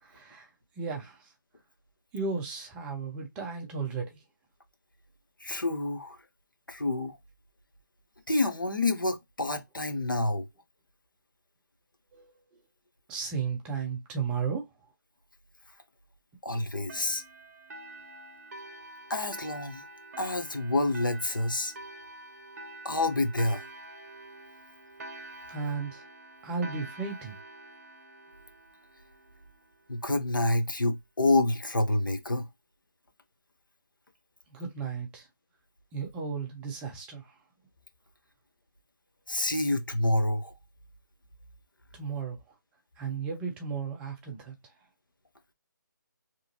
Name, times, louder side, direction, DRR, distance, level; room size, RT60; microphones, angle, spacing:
voice 1, 0.0-0.5 0.8-1.3 2.1-4.2 12.1-12.3 13.1-14.7 25.5-26.0 26.4-27.4 34.5-35.3 35.9-37.3 41.9-42.4 43.0-44.5, right 5 dB, 10° right, 0.5 m, -34 dB
voice 2, 5.4-6.2 6.7-7.2 8.3-10.4 16.4-17.2 19.1-19.8 20.2-21.7 22.8-23.6 29.9-32.5 39.3-40.5, left 2 dB, 90° left, 0.8 m, -28 dB
sound 1, 16.9-30.0, right 2 dB, 50° right, 0.7 m, -47 dB
3.0 x 2.4 x 2.6 m
figure-of-eight pair, 150°, 11 cm